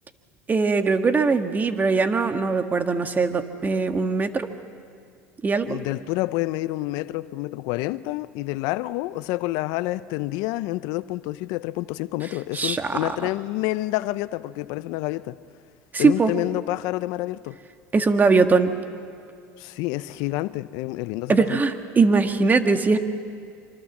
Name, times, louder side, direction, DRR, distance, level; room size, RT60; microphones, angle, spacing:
voice 1, 0.5-4.5 5.4-5.8 12.5-13.1 15.9-16.3 17.9-18.7 21.3-23.0, right 4 dB, 25° right, 1.7 m, -21 dB
voice 2, 5.6-15.4 16.0-17.6 19.6-21.6, left 18 dB, 75° left, 0.6 m, -28 dB
26.0 x 24.5 x 7.3 m
supercardioid pair, 90°, 7 cm